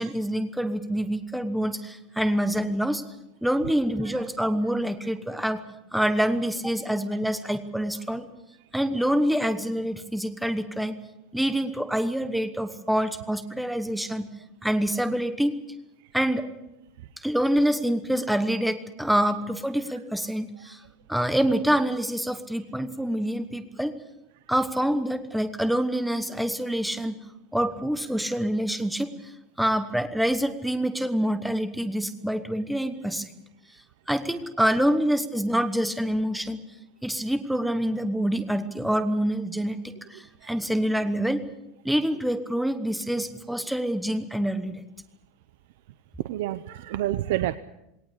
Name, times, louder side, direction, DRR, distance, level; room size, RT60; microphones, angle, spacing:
voice 1, 0.0-3.0 3.4-5.6 5.9-8.3 8.7-11.0 11.3-14.3 14.6-15.5 16.1-16.5 17.2-20.8 21.1-23.9 24.5-27.2 27.5-29.1 29.6-33.3 34.1-36.6 37.0-41.4 41.8-44.8, equal, ahead, 9 dB, 1.1 m, -26 dB
voice 2, 46.2-47.6, right 14 dB, 70° right, 13 dB, 0.8 m, -28 dB
20.5 x 18.5 x 8.4 m, 0.87 s
supercardioid pair, 175°, 0 cm